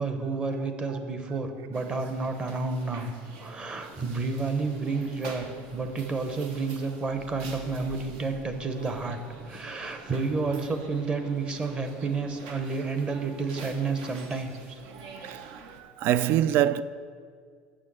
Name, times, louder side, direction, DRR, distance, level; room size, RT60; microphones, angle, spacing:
voice 1, 0.0-3.1 3.4-9.2 9.5-14.8, right 4 dB, 25° right, 0.9 m, -30 dB
sound 1, 1.7-15.8, right 4 dB, 75° right, 1.1 m, -46 dB
voice 2, 15.0-16.8, right 12 dB, 55° right, 0.3 m, -26 dB
6.6 x 6.3 x 7.5 m
supercardioid pair, 130°, 4 cm